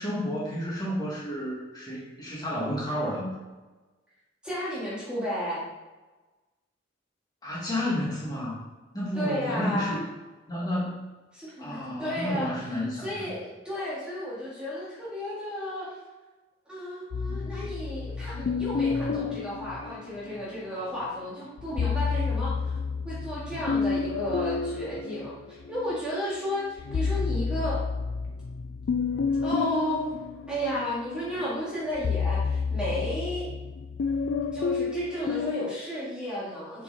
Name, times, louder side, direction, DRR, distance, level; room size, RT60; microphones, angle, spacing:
voice 1, 0.0-3.4 7.4-8.6 8.9-10.1 10.5-11.1 11.6-13.3, left 1 dB, 20° left, -7 dB, 2.0 m, -31 dB
voice 2, 4.4-5.7 9.2-10.0 11.3-12.5 13.0-16.0 16.7-22.7 23.0-27.8 29.4-30.1 30.5-33.5 34.5-36.8, equal, 5° right, -8 dB, 1.9 m, -33 dB
sound 1, 17.1-20.6 21.6-26.0 26.4-35.7, left 5 dB, 65° left, 0.3 m, -30 dB
6.9 x 4.6 x 4.1 m, 1.2 s
head